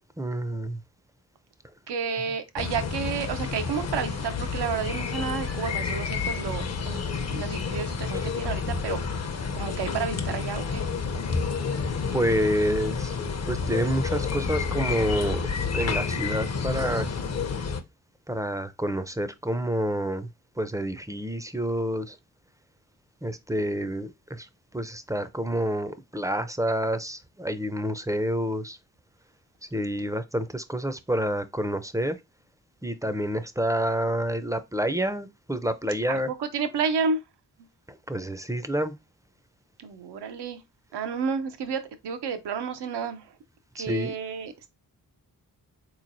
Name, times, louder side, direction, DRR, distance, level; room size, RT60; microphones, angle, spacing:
voice 1, 0.2-0.8 12.1-13.2 13.5-15.4 15.7-17.1 18.3-20.3 20.6-22.2 23.2-24.5 24.7-28.8 29.7-32.2 32.8-36.3 38.1-38.9 43.8-44.1, equal, 10° right, 0.5 m, -28 dB
voice 2, 1.9-7.0 7.3-10.8 36.1-37.2 39.8-40.6 40.9-43.3 43.7-44.7, right 6 dB, 80° right, 0.7 m, -31 dB
sound 1, 2.6-17.8, left 5 dB, 40° left, 0.7 m, -30 dB
3.8 x 3.1 x 2.6 m
supercardioid pair, 40°, 40 cm